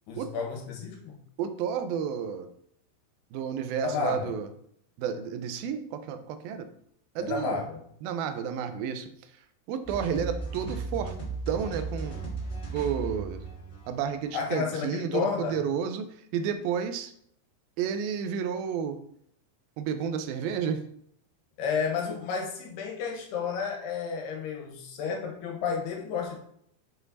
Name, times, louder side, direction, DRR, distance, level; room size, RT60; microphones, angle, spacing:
voice 1, 0.1-1.2 3.8-4.3 7.2-7.8 14.3-15.6 21.6-26.3, left 5 dB, 75° left, 0 dB, 3.5 m, -31 dB
voice 2, 1.4-2.5 3.3-4.5 5.0-6.7 7.2-7.6 8.0-9.1 9.7-11.2 11.5-12.2 12.7-13.5 13.9-16.1 16.3-17.1 17.8-19.0 19.8-20.8, right 7 dB, 75° right, 8 dB, 2.3 m, -31 dB
sound 1, 9.8-14.8, right 4 dB, 25° left, 2.2 m, -36 dB
8.4 x 5.6 x 4.0 m, 0.68 s
omnidirectional pair, 4.8 m